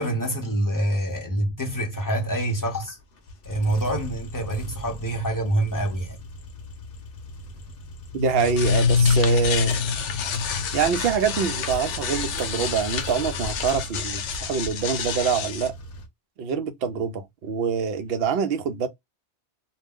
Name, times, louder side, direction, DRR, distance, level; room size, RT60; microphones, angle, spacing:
voice 1, 0.0-3.0 3.4-6.2, right 1 dB, 25° left, 0.6 m, -26 dB
sound 1, 2.0-16.1, equal, 60° left, 0.8 m, -39 dB
sound 2, 8.1-15.7, left 6 dB, 90° left, 0.9 m, -26 dB
voice 2, 8.1-9.7 10.7-15.7 16.4-18.9, right 6 dB, 65° right, 0.7 m, -25 dB
sound 3, 9.0-9.2 9.7-9.8 10.3-10.4 11.0-11.1 11.7-11.9 12.3-12.4 13.0-13.2 13.7-13.8 14.3-14.4, equal, 30° right, 0.7 m, -38 dB
2.3 x 2.1 x 3.4 m
omnidirectional pair, 1.2 m